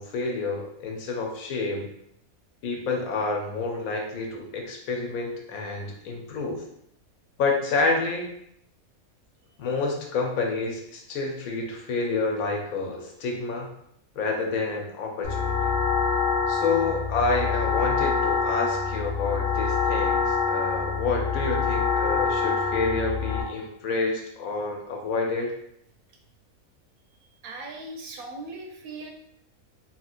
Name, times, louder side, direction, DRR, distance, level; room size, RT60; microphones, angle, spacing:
voice 1, 0.0-1.9 2.6-6.6 7.4-8.3 9.6-13.7 14.2-15.7 16.5-25.5, left 3 dB, 75° left, 1 dB, 1.0 m, -28 dB
sound 1, 15.2-23.4, left 5 dB, 60° left, 0.7 m, -25 dB
voice 2, 27.4-29.1, right 2 dB, 85° right, 2 dB, 1.1 m, -39 dB
2.9 x 2.7 x 2.4 m, 0.74 s
omnidirectional pair, 1.5 m